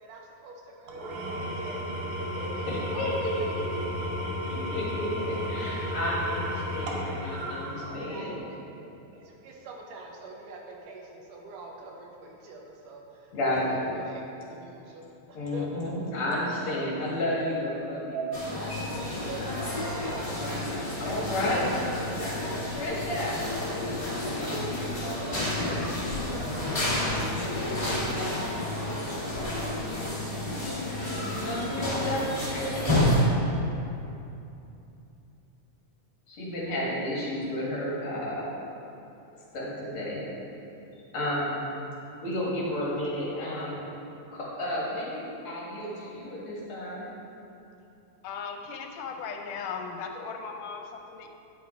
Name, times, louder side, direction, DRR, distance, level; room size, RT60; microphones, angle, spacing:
voice 1, 0.0-1.8 2.2-3.7 4.4-4.5 8.1-8.6 9.1-13.4 13.6-15.9 16.7-16.8 17.9-18.3 19.1-19.9, right 3 dB, 85° right, 0 dB, 2.5 m, -43 dB
Engine / Tools, 0.9-8.3, left 1 dB, 70° right, 1.3 m, -33 dB
voice 2, 2.7-8.4 13.3-13.9 15.3-18.2 20.2-24.7 31.1-32.9 36.3-38.5 39.5-40.2 41.1-41.7 42.2-43.9 44.3-47.1, left 1 dB, 50° left, -6 dB, 2.3 m, -32 dB
sound 1, 18.3-33.2, left 1 dB, 65° left, 0.3 m, -30 dB
voice 3, 48.2-51.3, left 5 dB, 80° left, 3 dB, 2.1 m, -37 dB
10.5 x 5.6 x 4.4 m, 2.8 s
omnidirectional pair, 3.7 m